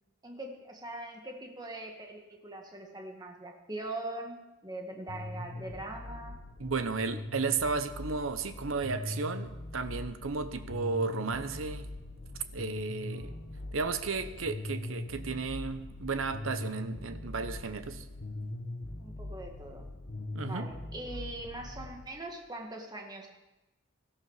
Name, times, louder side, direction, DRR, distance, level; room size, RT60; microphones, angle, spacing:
voice 1, 0.2-6.4 19.0-19.8 20.4-23.3, right 2 dB, 20° right, 2 dB, 1.8 m, -42 dB
sound 1, 5.1-22.0, left 2 dB, 55° left, 1.5 m, -41 dB
voice 2, 6.6-11.9 12.5-13.3 13.7-18.0 20.3-20.7, right 4 dB, 80° right, 10 dB, 0.9 m, -34 dB
17.5 x 13.0 x 4.9 m, 1.0 s
head